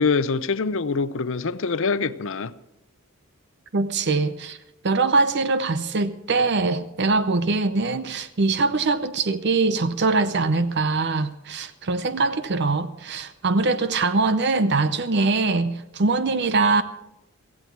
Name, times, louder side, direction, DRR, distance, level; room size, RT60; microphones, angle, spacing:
voice 1, 0.0-2.5, left 4 dB, 60° left, 0.7 m, -24 dB
voice 2, 3.7-4.6 4.8-16.8, right 3 dB, 50° right, 0.7 m, -22 dB
16.5 x 15.5 x 4.7 m
head